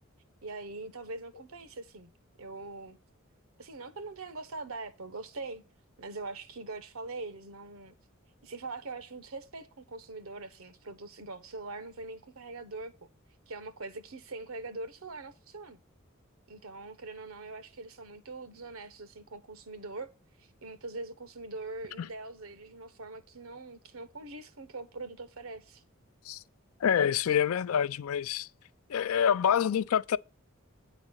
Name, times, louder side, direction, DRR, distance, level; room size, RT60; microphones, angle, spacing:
voice 1, 0.4-2.1 2.4-3.0 3.6-5.6 6.0-7.9 8.4-13.1 13.5-15.8 16.5-20.1 20.4-25.8, right 3 dB, 90° right, 1.0 m, -42 dB
voice 2, 26.8-28.5 28.9-30.2, left 8 dB, 90° left, 0.4 m, -26 dB
9.7 x 4.1 x 6.3 m
head